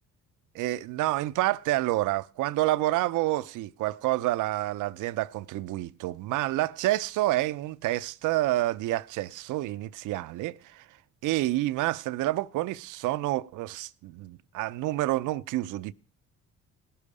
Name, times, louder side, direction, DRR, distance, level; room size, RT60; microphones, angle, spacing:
voice 1, 0.5-10.9 11.2-15.9, right 16 dB, 90° right, 0.5 m, -28 dB
17.5 x 7.0 x 4.8 m
cardioid pair, 90°, 30 cm